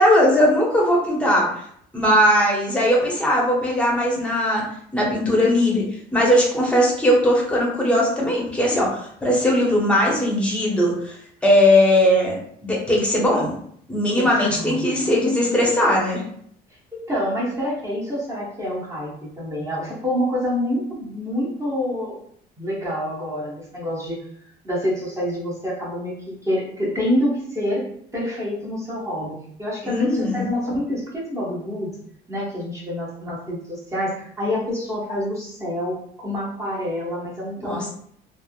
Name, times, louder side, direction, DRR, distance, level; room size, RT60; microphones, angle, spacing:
voice 1, 0.0-1.7 1.9-4.6 4.9-5.8 6.1-11.2 11.4-12.4 12.6-13.5 13.9-16.2 29.8-30.4 37.6-37.9, left 1 dB, 5° left, -3 dB, 0.9 m, -19 dB
voice 2, 14.2-14.9 16.9-22.2 22.6-24.2 24.6-27.9 28.1-31.9 32.3-37.9, left 1 dB, 15° right, -6 dB, 1.1 m, -27 dB
3.3 x 2.0 x 2.3 m, 0.65 s
cardioid pair, 110°, 17 cm